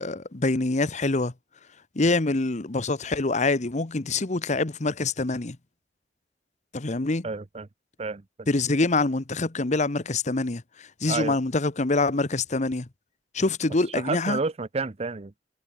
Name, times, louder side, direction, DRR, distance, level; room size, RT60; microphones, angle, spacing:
voice 1, 0.0-1.3 2.0-5.6 6.7-7.3 8.5-10.6 11.0-12.9 13.3-14.4, left 3 dB, 45° left, 1.0 m, -25 dB
voice 2, 7.2-7.7 8.0-8.2 11.1-11.4 14.0-15.4, right 4 dB, 35° right, 0.7 m, -30 dB
head